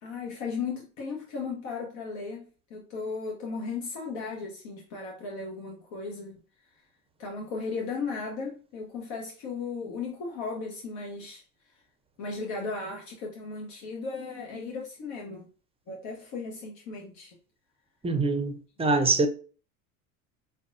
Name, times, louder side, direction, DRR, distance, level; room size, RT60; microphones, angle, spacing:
voice 1, 0.0-6.4 7.2-11.4 12.2-15.5 15.9-17.3 18.9-19.3, left 4 dB, 60° left, 1.0 m, -36 dB
voice 2, 18.0-19.3, right 3 dB, 15° right, 0.6 m, -24 dB
5.1 x 2.2 x 2.6 m
hypercardioid pair, 90°, 40 cm